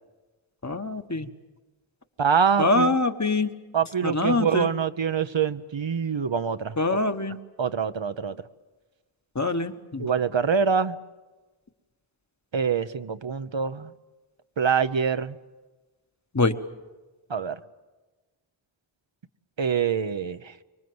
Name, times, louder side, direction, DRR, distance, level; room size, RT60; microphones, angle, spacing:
voice 1, 0.6-1.3 2.6-3.5 4.0-4.7 6.8-7.4 9.3-10.0 16.3-16.5, left 2 dB, 35° left, 8 dB, 1.2 m, -24 dB
voice 2, 2.2-2.9 3.7-7.0 7.6-8.4 10.0-11.0 12.5-13.9 14.6-15.4 17.3-17.6 19.6-20.4, right 6 dB, 70° right, 11 dB, 0.8 m, -25 dB
25.0 x 23.5 x 7.8 m, 1.2 s
wide cardioid pair, 45°, 47 cm